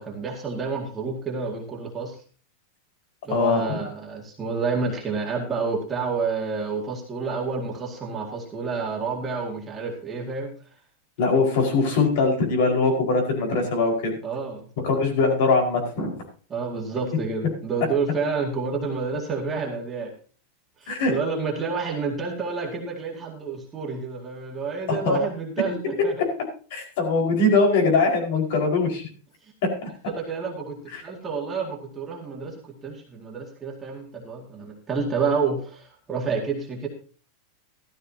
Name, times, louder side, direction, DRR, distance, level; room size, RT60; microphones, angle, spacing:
voice 1, 0.0-2.2 3.2-10.5 14.2-14.6 16.5-20.1 20.8-26.1 30.1-32.6 32.8-36.9, right 4 dB, 15° right, 0 dB, 2.1 m, -29 dB
voice 2, 3.3-3.8 11.2-14.1 14.8-16.1 20.9-21.1 24.9-25.2 26.7-29.1 29.8-29.9 30.9-31.0, left 3 dB, 60° left, 2 dB, 4.9 m, -22 dB
14.5 x 13.5 x 2.8 m, 0.39 s
supercardioid pair, 165°, 0 cm